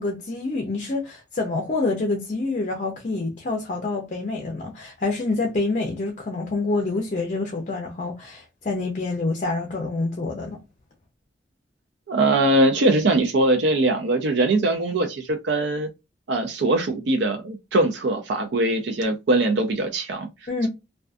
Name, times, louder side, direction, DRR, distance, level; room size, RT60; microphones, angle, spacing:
voice 1, 0.0-10.6 20.5-20.7, left 3 dB, 40° left, 0.5 m, -27 dB
voice 2, 12.1-15.9 16.3-20.7, right 2 dB, 75° right, 0.4 m, -22 dB
2.5 x 2.3 x 2.3 m
head